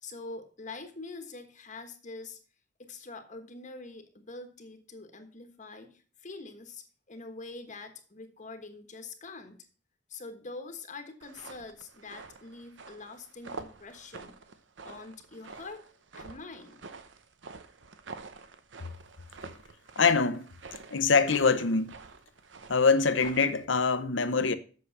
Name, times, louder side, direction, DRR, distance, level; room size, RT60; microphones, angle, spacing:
voice 1, 0.0-2.4 2.8-9.7 10.1-14.4 14.8-15.8 16.1-16.8, left 3 dB, 40° left, 1.3 m, -44 dB
sound 1, 11.2-23.6, right 4 dB, 75° right, 0.9 m, -48 dB
voice 2, 20.0-20.5 20.9-21.9 22.7-24.5, left 4 dB, 85° left, 0.9 m, -24 dB
8.2 x 6.4 x 6.6 m
head